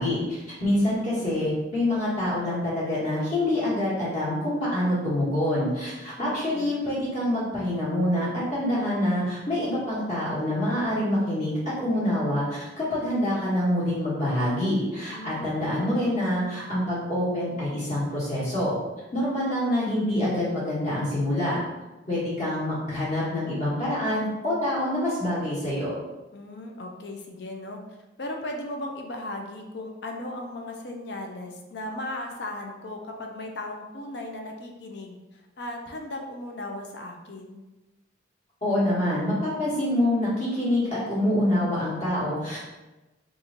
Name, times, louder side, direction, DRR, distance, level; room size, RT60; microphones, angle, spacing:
voice 1, 0.0-18.8 19.1-21.6 22.1-25.9 38.6-42.6, left 1 dB, 35° left, -8 dB, 1.2 m, -26 dB
voice 2, 6.2-6.7 15.1-15.9 26.3-27.8 28.2-37.6, left 1 dB, 60° left, 2 dB, 0.5 m, -37 dB
3.0 x 2.5 x 3.8 m, 1.1 s
head